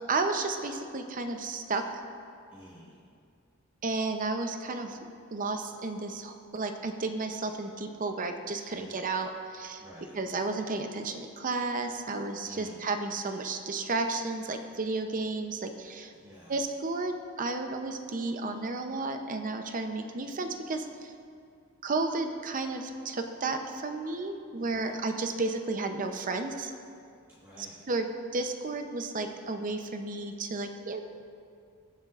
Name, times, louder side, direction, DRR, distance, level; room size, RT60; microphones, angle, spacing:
voice 1, 0.1-2.0 3.8-5.0 5.3-9.8 10.1-16.1 16.5-21.1 21.8-26.7 27.9-28.1 28.3-31.0, right 3 dB, 40° right, 6 dB, 0.7 m, -32 dB
voice 2, 2.5-3.0 8.7-9.0 9.8-10.2 12.4-12.8 16.1-16.6 24.5-25.0 27.3-27.8, equal, 10° right, -9 dB, 1.4 m, -51 dB
21.0 x 7.3 x 2.5 m, 2.4 s
head